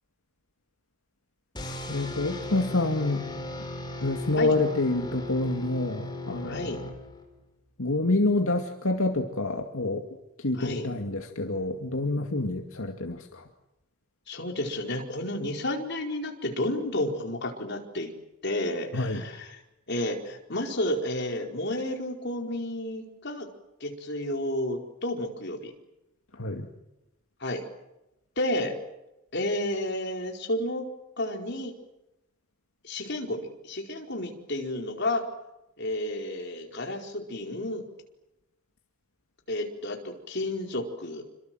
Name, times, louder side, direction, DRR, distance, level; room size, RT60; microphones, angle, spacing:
sound 1, 1.5-7.4, left 1 dB, 20° left, 4.3 m, -37 dB
voice 1, 1.9-3.3 4.0-6.7 7.8-10.0 10.4-13.4 18.9-19.2 26.4-26.7, left 2 dB, 75° left, 3 dB, 2.3 m, -27 dB
voice 2, 6.3-6.8 10.5-10.9 14.3-18.1 18.4-19.6 19.9-23.5 23.8-25.7 27.4-27.6 28.4-28.7 29.3-30.9 31.2-31.7 32.8-35.2 35.8-37.8 39.5-41.2, left 1 dB, 55° left, 2 dB, 4.7 m, -31 dB
28.0 x 25.5 x 7.8 m, 0.95 s
head